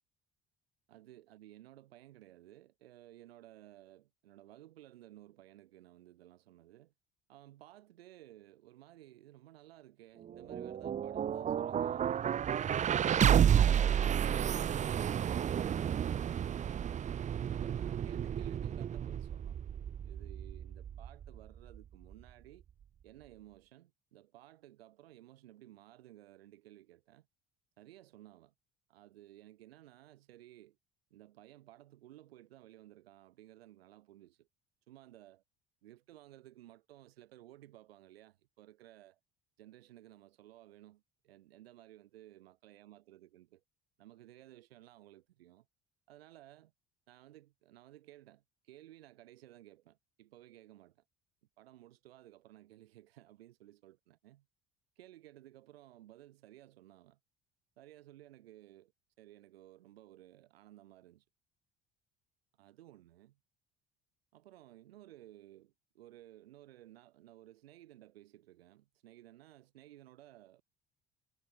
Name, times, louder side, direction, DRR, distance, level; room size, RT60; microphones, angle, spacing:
voice 1, 0.9-6.9 7.3-13.0 17.4-19.6 20.0-22.6 23.0-27.3 27.8-28.5 28.9-30.8 31.1-34.5 34.9-35.4 35.8-39.2 39.6-43.6 44.0-45.7 46.1-46.7 47.1-51.0 51.6-54.4 55.0-57.2 57.8-58.9 59.2-61.2 62.6-63.4 64.3-70.6, right 14 dB, 75° right, 4.9 m, -57 dB
sound 1, 10.2-22.3, right 9 dB, 25° right, 0.5 m, -31 dB
figure-of-eight pair, 55°, 31 cm